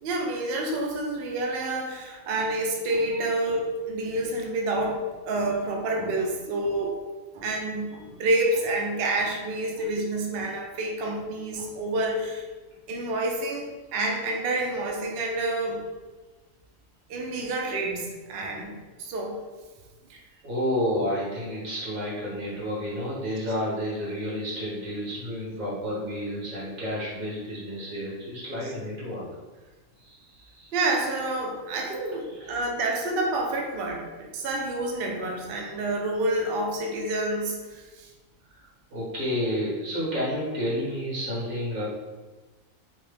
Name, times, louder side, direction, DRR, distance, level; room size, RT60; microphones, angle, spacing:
voice 1, 0.0-7.0 7.3-12.4 12.9-15.8 17.1-19.4 20.1-20.2 30.7-38.1, right 2 dB, 60° right, 0 dB, 0.6 m, -28 dB
voice 2, 20.4-29.2 30.0-30.7 32.2-32.5 38.5-38.6 38.9-41.8, equal, 85° right, -7 dB, 1.6 m, -30 dB
3.4 x 2.1 x 3.2 m, 1.3 s
omnidirectional pair, 1.4 m